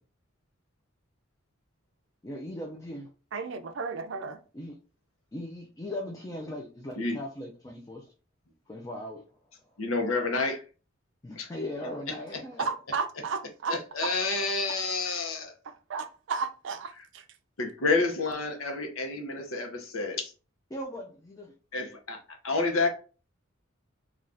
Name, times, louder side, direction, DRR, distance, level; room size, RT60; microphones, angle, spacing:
voice 1, 2.2-3.1 4.5-4.7 5.3-8.0 8.7-9.2 11.2-12.7 20.7-21.5, left 1 dB, 15° left, 0.4 m, -38 dB
voice 2, 3.3-4.4 12.6-14.1 15.6-17.2, right 5 dB, 60° right, 0.4 m, -34 dB
voice 3, 9.8-10.6 11.4-11.5 13.7-15.5 17.6-20.3 21.7-22.2 22.4-22.9, left 3 dB, 85° left, 0.7 m, -29 dB
3.3 x 2.3 x 2.5 m
head